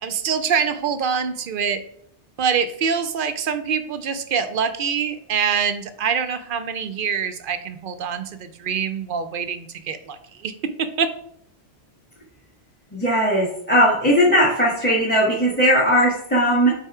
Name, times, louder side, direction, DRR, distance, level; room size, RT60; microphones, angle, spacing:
voice 1, 0.0-1.8 2.4-11.1, right 6 dB, 60° right, 10 dB, 0.7 m, -25 dB
voice 2, 12.9-16.7, equal, 10° left, -6 dB, 1.4 m, -18 dB
5.5 x 4.2 x 4.8 m, 0.69 s
omnidirectional pair, 1.2 m